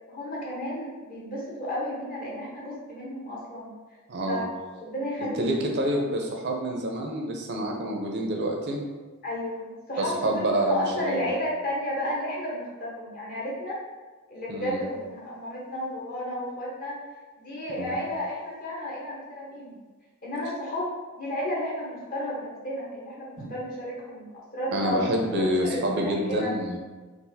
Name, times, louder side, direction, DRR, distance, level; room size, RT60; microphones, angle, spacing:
voice 1, 0.1-3.7 4.3-4.4 4.8-5.5 9.2-13.8 14.3-17.0 17.4-19.8 20.2-24.3 24.5-25.1 25.4-26.5, left 1 dB, 45° left, -5 dB, 0.9 m, -32 dB
voice 2, 4.1-4.4 5.4-8.8 10.0-11.3 14.5-14.8 17.8-17.9 23.4-23.5 24.7-26.8, right 1 dB, 55° right, 1 dB, 0.5 m, -27 dB
3.9 x 2.4 x 2.6 m, 1.3 s
head